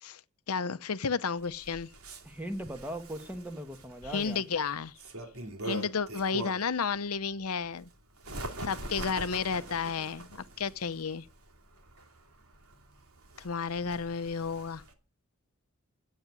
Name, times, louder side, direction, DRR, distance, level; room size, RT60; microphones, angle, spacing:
voice 1, 0.5-1.9 4.0-4.9 5.6-7.9 8.6-11.3 13.4-14.8, left 5 dB, 90° left, 0.7 m, -32 dB
Bird, 1.4-6.8 7.3-14.9, right 2 dB, 85° right, 2.9 m, -43 dB
voice 2, 2.2-4.4, equal, 5° right, 1.6 m, -39 dB
13.0 x 8.7 x 9.5 m
head